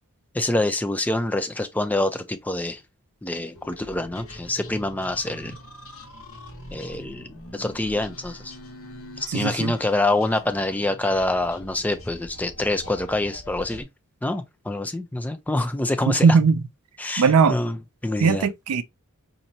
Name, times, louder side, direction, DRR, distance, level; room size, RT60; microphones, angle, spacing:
voice 1, 0.3-2.8 3.2-5.5 6.7-8.5 9.2-13.9 14.2-16.3 17.0-17.8 18.0-18.5, left 2 dB, 5° left, 0.3 m, -26 dB
sound 1, 3.5-13.8, left 1 dB, 65° left, 1.0 m, -43 dB
voice 2, 9.3-9.7 16.1-16.6 17.2-17.6 18.2-18.8, right 5 dB, 85° right, 0.5 m, -19 dB
4.2 x 2.6 x 2.7 m
head